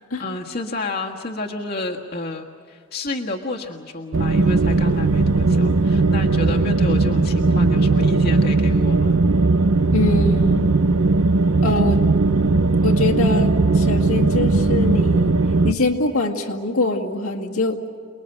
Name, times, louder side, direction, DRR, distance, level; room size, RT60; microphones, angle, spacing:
voice 1, 0.2-9.2, left 2 dB, 45° left, 0 dB, 1.5 m, -30 dB
sound 1, 4.1-15.7, right 3 dB, 80° right, 0.8 m, -18 dB
voice 2, 9.9-10.7 11.6-12.0 12.8-15.3 15.6-17.8, left 3 dB, 85° left, -1 dB, 2.2 m, -23 dB
29.0 x 21.0 x 8.1 m, 2.1 s
head